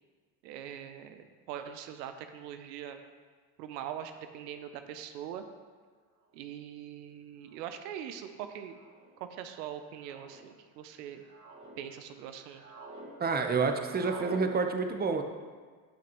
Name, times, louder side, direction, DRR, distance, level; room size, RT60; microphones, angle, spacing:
voice 1, 0.4-3.0 3.6-5.4 6.3-8.8 9.2-11.2 11.8-12.6, right 9 dB, 80° right, 8 dB, 0.8 m, -42 dB
sound 1, 6.4-6.5 7.5-7.8 8.7-9.1 10.0-10.4 11.0-11.8 12.2-13.1 13.4-14.4, right 2 dB, 35° right, 2.9 m, -47 dB
voice 2, 13.2-15.2, right 4 dB, 20° right, 5 dB, 0.9 m, -28 dB
15.5 x 5.9 x 3.1 m, 1.5 s
hypercardioid pair, 85°, 49 cm